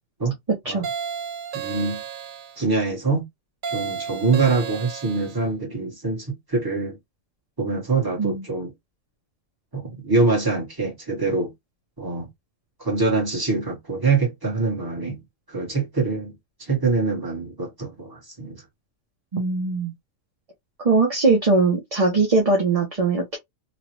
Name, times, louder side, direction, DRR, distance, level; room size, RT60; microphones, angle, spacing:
sound 1, 0.8-2.6 3.6-5.4, right 7 dB, 65° right, 0.5 m, -32 dB
voice 1, 1.5-2.0 2.6-3.2 3.7-7.0 7.6-8.7 9.7-11.5 12.0-12.3 12.8-15.2 15.5-16.3 16.6-18.6, right 3 dB, 15° right, 1.3 m, -24 dB
voice 2, 19.3-19.9 20.8-23.4, right 3 dB, 35° right, 0.7 m, -20 dB
3.0 x 2.4 x 3.0 m
omnidirectional pair, 1.4 m